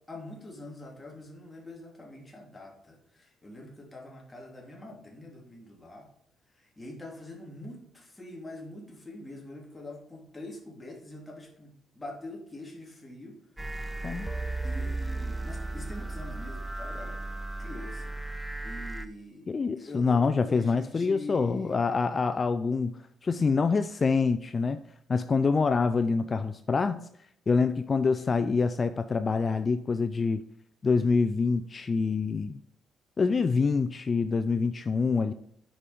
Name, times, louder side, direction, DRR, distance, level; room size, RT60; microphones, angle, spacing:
voice 1, 0.1-6.1 6.5-13.4 13.7-13.8 14.6-17.2 17.6-19.5 19.8-21.8, left 2 dB, 15° left, -1 dB, 2.8 m, -44 dB
sound 1, 13.6-19.1, right 2 dB, 10° right, 0.6 m, -35 dB
voice 2, 19.5-24.8 25.1-27.1 27.5-30.4 30.8-32.6 33.2-35.3, left 4 dB, 35° left, 10 dB, 0.4 m, -26 dB
8.7 x 5.3 x 5.0 m, 0.69 s
cardioid pair, 90°, 0 cm